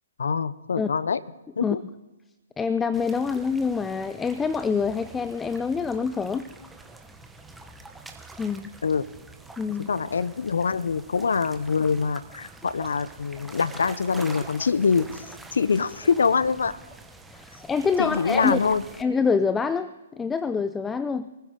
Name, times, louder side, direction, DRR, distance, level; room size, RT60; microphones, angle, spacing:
voice 1, 0.2-1.2 1.6-1.8 8.8-9.1 9.9-15.3 15.5-16.8 18.0-18.8, left 5 dB, 75° left, 18 dB, 0.7 m, -24 dB
voice 2, 2.6-6.5 8.4-8.7 9.6-9.9 17.3-18.6 19.0-21.3, left 5 dB, 10° left, 13 dB, 0.5 m, -26 dB
sound 1, 2.9-19.0, right 3 dB, 5° right, 1.1 m, -45 dB
24.0 x 15.0 x 3.7 m, 1.1 s
hypercardioid pair, 130°, 0 cm